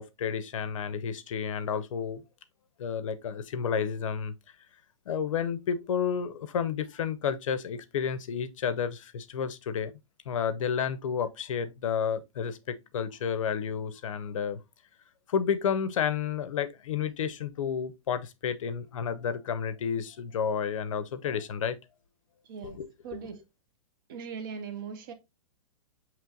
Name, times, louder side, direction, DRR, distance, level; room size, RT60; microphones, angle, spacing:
voice 1, 0.0-2.2 2.8-4.3 5.1-9.9 10.3-14.6 15.3-21.8 22.6-23.3, left 7 dB, 65° left, 0.6 m, -31 dB
voice 2, 22.4-22.8 23.0-23.4 24.1-25.1, right 6 dB, 40° right, 0.5 m, -39 dB
6.0 x 3.0 x 2.4 m
hypercardioid pair, 170°, 18 cm